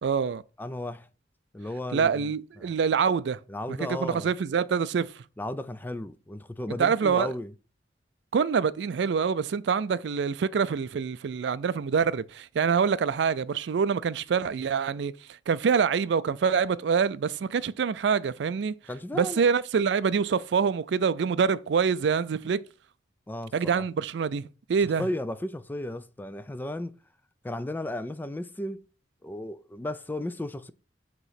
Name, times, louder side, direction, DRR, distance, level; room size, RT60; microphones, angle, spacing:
voice 1, 0.0-0.4 1.9-3.4 3.9-5.1 6.8-7.3 8.3-15.1 15.5-18.7 19.1-22.6 23.5-24.4 24.7-25.0, right 6 dB, 65° right, 0.4 m, -25 dB
voice 2, 0.6-1.1 1.5-2.3 2.6-2.7 3.5-4.3 5.4-7.5 18.9-19.4 23.3-23.8 24.8-26.9 27.4-28.9 29.2-30.7, left 1 dB, 10° left, 0.3 m, -34 dB
8.0 x 3.0 x 5.7 m
head